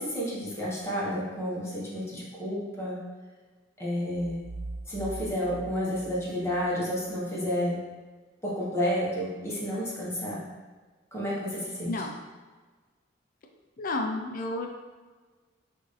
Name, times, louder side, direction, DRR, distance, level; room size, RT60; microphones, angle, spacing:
voice 1, 0.0-3.0 3.8-4.5 4.9-7.8 8.4-10.4 11.1-11.9, equal, 15° left, -7 dB, 1.2 m, -30 dB
sound 1, 4.2-7.0, right 2 dB, 40° right, 0.4 m, -42 dB
voice 2, 11.9-12.2 13.8-14.7, left 2 dB, 50° left, 2 dB, 0.5 m, -31 dB
6.3 x 2.6 x 3.3 m, 1.3 s
head